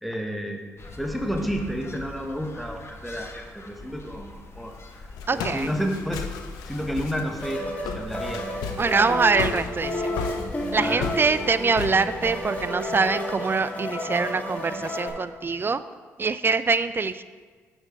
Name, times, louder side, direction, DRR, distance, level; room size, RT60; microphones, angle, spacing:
voice 1, 0.0-0.6 1.0-4.8 5.3-6.3 6.6-7.6 7.9-8.5 10.7-11.1, equal, ahead, 3 dB, 1.2 m, -30 dB
sound 1, 0.8-12.4, left 2 dB, 40° left, 1.3 m, -44 dB
Walk footsteps, 4.5-13.1, left 7 dB, 75° left, 0.6 m, -36 dB
voice 2, 5.3-5.7 8.8-10.1 10.7-15.8 16.2-17.2, right 4 dB, 30° right, 14 dB, 0.4 m, -24 dB
sound 2, 7.4-15.1, left 1 dB, 20° left, 2.5 m, -31 dB
8.2 x 6.2 x 5.0 m, 1.5 s
hypercardioid pair, 45°, 7 cm